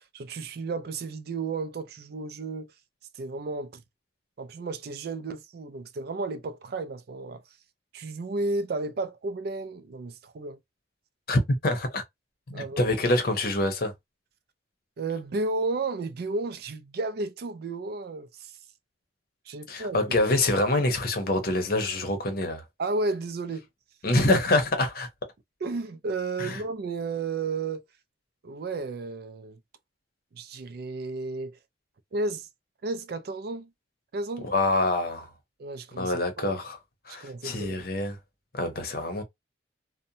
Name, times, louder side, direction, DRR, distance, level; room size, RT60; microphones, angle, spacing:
voice 1, 0.0-2.7 3.1-3.8 4.4-7.4 7.9-10.6 12.5-13.0 15.0-18.5 19.5-20.0 22.8-23.7 25.6-27.8 28.4-29.6 30.3-31.6 32.1-32.5 32.8-33.7 34.1-34.5 35.6-36.5 37.2-37.9, right 3 dB, 55° right, 0.4 m, -33 dB
voice 2, 11.3-12.0 12.5-13.9 19.7-22.6 24.0-25.1 26.4-26.6 34.4-35.3 36.0-36.8 37.1-38.2 38.5-39.2, left 2 dB, 55° left, 0.7 m, -26 dB
2.7 x 2.1 x 2.6 m
head